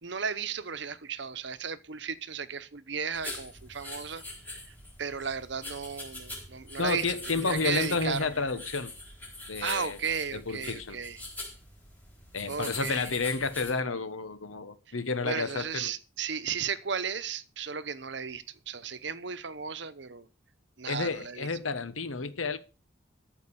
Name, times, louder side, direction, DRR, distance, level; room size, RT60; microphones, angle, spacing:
voice 1, 0.0-4.2 4.5-7.2 7.4-8.3 9.6-11.2 12.5-13.1 15.2-20.3 20.8-21.5, right 6 dB, 65° right, 0.9 m, -35 dB
sound 1, 3.1-13.7, left 2 dB, 10° left, 4.0 m, -43 dB
voice 2, 6.8-8.9 9.5-10.0 10.3-11.0 12.3-15.9 20.9-22.6, left 4 dB, 90° left, 1.2 m, -31 dB
14.0 x 5.3 x 6.9 m
head